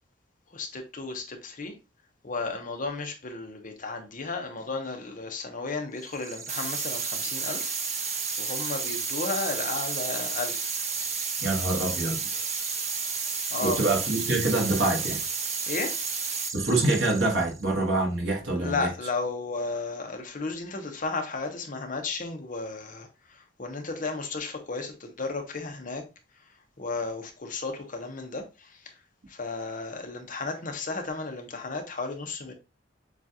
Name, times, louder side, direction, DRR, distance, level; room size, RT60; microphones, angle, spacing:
voice 1, 0.5-1.7 2.2-10.7 13.5-13.8 15.7-16.0 18.6-26.1 26.5-28.9 29.3-32.5, left 3 dB, 45° left, 0.9 m, -34 dB
sound 1, 6.0-17.8, right 5 dB, 15° right, 0.4 m, -38 dB
sound 2, 6.5-16.5, right 5 dB, 40° right, 0.9 m, -32 dB
voice 2, 11.4-12.5 13.6-15.2 16.5-18.9, right 2 dB, 75° right, 1.4 m, -26 dB
7.2 x 2.5 x 2.9 m
head